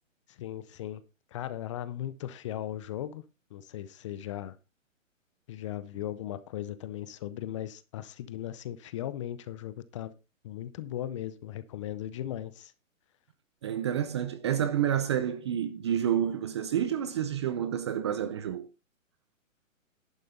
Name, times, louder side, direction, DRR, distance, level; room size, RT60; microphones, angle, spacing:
voice 1, 0.3-1.0 1.3-3.2 3.5-4.6 5.5-10.1 10.4-12.7, left 12 dB, 25° left, 0.6 m, -37 dB
voice 2, 13.6-18.7, right 9 dB, 20° right, 0.5 m, -29 dB
11.0 x 9.0 x 4.0 m
hypercardioid pair, 135°, 40 cm